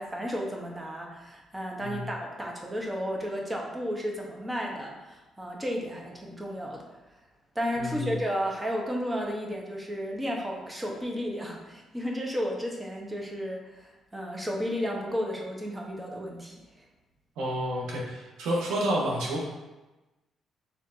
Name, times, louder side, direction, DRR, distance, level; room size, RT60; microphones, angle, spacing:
voice 1, 0.0-6.8 7.5-16.5, equal, 15° right, -1 dB, 0.9 m, -33 dB
voice 2, 1.8-2.1 7.8-8.2 17.4-19.4, equal, 90° right, -3 dB, 1.0 m, -30 dB
4.4 x 3.5 x 2.6 m, 1.1 s
cardioid pair, 90°, 0 cm